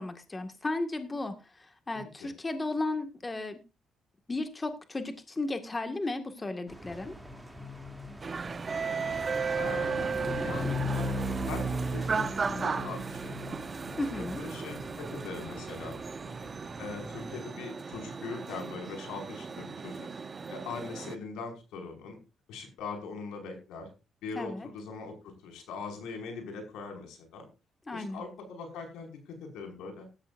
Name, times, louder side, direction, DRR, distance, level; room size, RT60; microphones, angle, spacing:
voice 1, 0.0-3.6 4.3-7.2 14.0-14.4 24.4-24.7 27.9-28.2, left 2 dB, 25° left, 6 dB, 1.9 m, -34 dB
sound 1, 6.7-17.3, equal, 5° right, 2.8 m, -38 dB
sound 2, 8.2-21.2, right 5 dB, 35° right, 1.0 m, -36 dB
voice 2, 9.6-10.1 10.4-13.6 14.4-16.0 16.8-20.1 20.5-22.2 22.5-23.9 24.2-25.1 25.4-27.5 27.9-30.0, left 4 dB, 90° left, 3 dB, 5.6 m, -41 dB
16.5 x 13.5 x 2.6 m, 0.29 s
cardioid pair, 90°, 0 cm